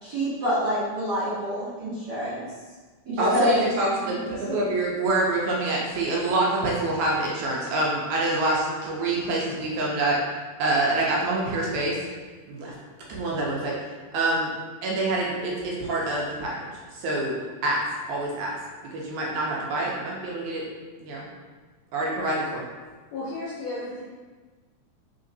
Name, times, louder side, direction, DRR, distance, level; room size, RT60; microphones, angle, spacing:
voice 1, 0.0-2.4 3.1-3.6 4.1-4.2, equal, 50° right, -13 dB, 1.2 m, -27 dB
voice 2, 3.2-10.2 10.6-12.0 12.5-12.7 13.1-14.5 14.8-18.6 18.9-20.7 21.0-21.3 21.9-22.7, right 2 dB, 75° right, -3 dB, 2.0 m, -26 dB
voice 3, 23.1-24.0, left 2 dB, 75° left, -6 dB, 1.6 m, -33 dB
4.3 x 3.8 x 2.6 m, 1.3 s
omnidirectional pair, 3.7 m